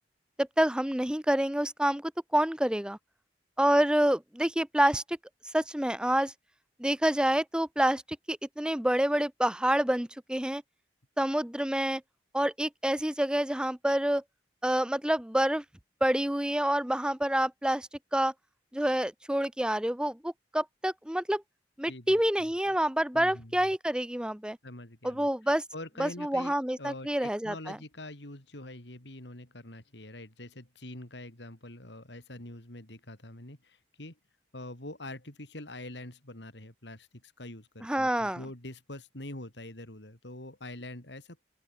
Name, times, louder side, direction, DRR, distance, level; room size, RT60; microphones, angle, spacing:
voice 1, 0.4-3.0 3.6-5.2 5.5-6.3 6.8-8.0 8.3-10.6 11.2-12.0 12.3-14.2 14.6-15.6 16.0-18.3 18.7-21.4 21.8-24.6 25.0-25.6 26.0-27.8 37.8-38.4, right 1 dB, 5° right, 0.6 m, -27 dB
voice 2, 21.9-22.5 23.1-23.7 24.6-25.3 25.7-34.2 34.5-41.4, left 1 dB, 75° left, 4.0 m, -45 dB
open air
head